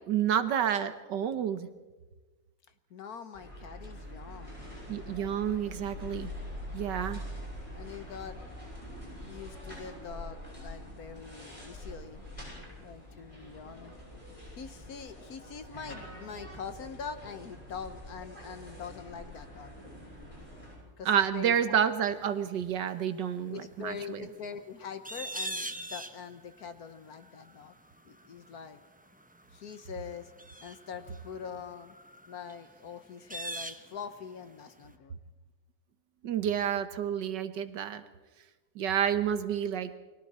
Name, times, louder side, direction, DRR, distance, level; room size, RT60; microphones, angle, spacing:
voice 1, 0.1-1.7 4.9-6.3 6.7-7.2 21.0-24.2 36.2-38.0 38.7-39.9, right 9 dB, 70° right, 11 dB, 1.7 m, -29 dB
voice 2, 2.9-4.6 7.7-8.4 9.3-12.2 12.8-13.9 14.5-19.7 21.0-21.7 23.5-27.7 28.0-28.8 29.5-30.3 30.6-31.9 32.3-35.2, left 6 dB, 60° left, 10 dB, 1.4 m, -43 dB
sound 1, 3.3-20.8, left 1 dB, 15° left, 8.0 m, -45 dB
sound 2, 21.7-34.6 34.9-35.0, right 1 dB, 10° right, 0.3 m, -43 dB
29.5 x 23.0 x 4.3 m, 1.2 s
omnidirectional pair, 2.0 m